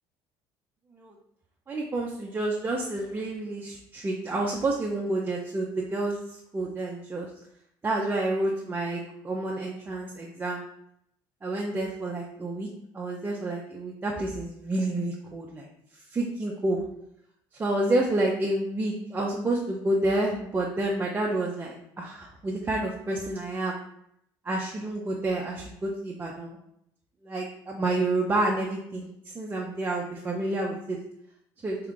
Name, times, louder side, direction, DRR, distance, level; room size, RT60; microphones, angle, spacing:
voice 1, 1.7-7.3 7.8-10.6 11.4-12.7 12.9-15.7 16.1-16.8 17.6-23.8 24.4-26.6 27.2-31.0 31.6-31.8, right 2 dB, 20° right, -2 dB, 0.5 m, -29 dB
3.6 x 2.3 x 3.7 m, 0.75 s
supercardioid pair, 100°, 9 cm